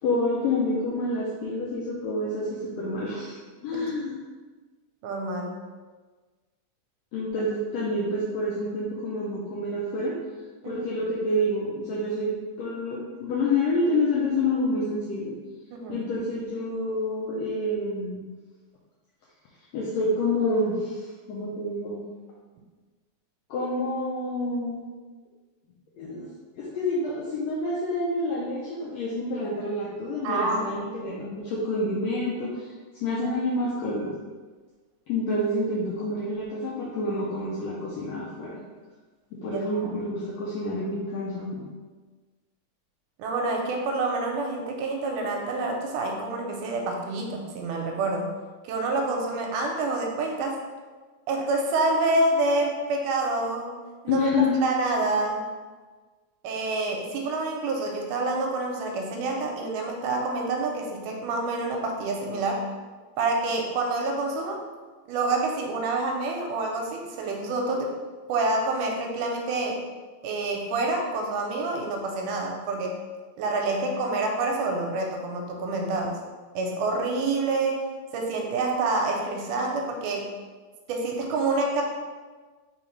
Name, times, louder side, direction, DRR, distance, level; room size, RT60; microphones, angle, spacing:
voice 1, 0.0-3.4 3.6-4.2 7.1-10.2 10.6-15.3 15.9-18.2 19.7-22.0 23.5-24.8 26.0-26.3 26.6-30.8 31.0-32.7 33.0-34.1 35.1-38.6 39.3-41.6 54.1-54.6, left 2 dB, 85° left, -5 dB, 1.5 m, -28 dB
voice 2, 5.0-5.6 10.6-10.9 15.7-16.0 30.2-31.2 39.5-40.1 43.2-48.3 48.6-50.6 51.3-53.7 54.0-54.3 54.6-55.5 56.4-62.7 63.2-64.6 65.1-68.0 68.3-69.9 70.2-73.0 73.4-76.2 76.5-77.8 78.1-80.3 80.9-81.8, right 2 dB, 85° right, 1 dB, 2.1 m, -27 dB
4.4 x 3.8 x 3.1 m, 1.4 s
omnidirectional pair, 3.7 m